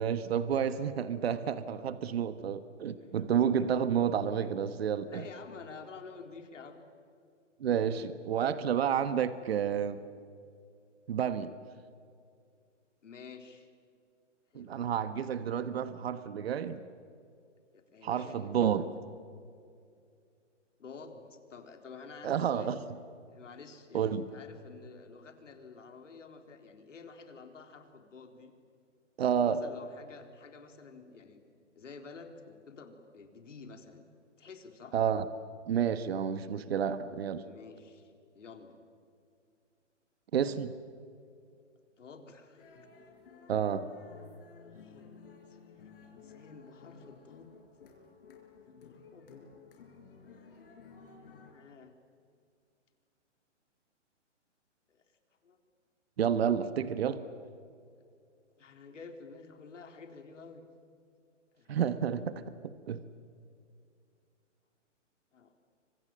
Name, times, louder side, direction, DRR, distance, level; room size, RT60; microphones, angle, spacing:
voice 1, 0.0-5.2 7.6-10.0 11.1-11.5 14.5-16.8 18.0-18.8 22.2-22.8 23.9-24.2 29.2-29.6 34.9-35.3 35.7-37.4 40.3-40.7 43.5-43.9 56.2-57.2 61.7-63.0, right 8 dB, 55° right, 12 dB, 1.3 m, -30 dB
voice 2, 2.9-3.9 5.1-6.8 13.0-13.7 14.5-14.9 17.7-18.8 20.8-22.9 23.3-28.5 29.3-31.4 31.8-34.1 34.4-35.0 37.4-38.7 42.0-42.9 44.6-45.1 45.5-45.6 46.0-47.5 48.7-49.5 51.2-51.9 54.9-55.0 55.4-55.6 58.6-60.6 61.5-61.8 65.3-65.5, left 4 dB, 80° left, 5 dB, 3.9 m, -50 dB
sound 1, 42.6-51.5, left 5 dB, 50° left, 5.2 m, -55 dB
29.5 x 25.0 x 7.6 m, 2.4 s
hypercardioid pair, 165°, 37 cm